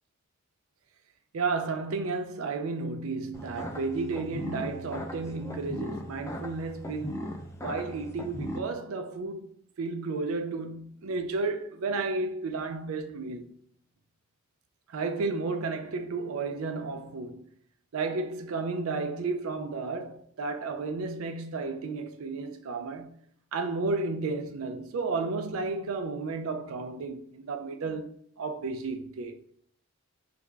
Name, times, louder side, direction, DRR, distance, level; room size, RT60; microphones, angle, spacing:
voice 1, 1.3-9.5 9.8-13.5 14.9-17.4 17.9-23.1 23.5-28.1 28.4-29.4, right 3 dB, 85° right, 0.4 m, -32 dB
sound 1, 3.3-8.6, equal, 15° left, 0.3 m, -38 dB
3.3 x 2.5 x 3.1 m
head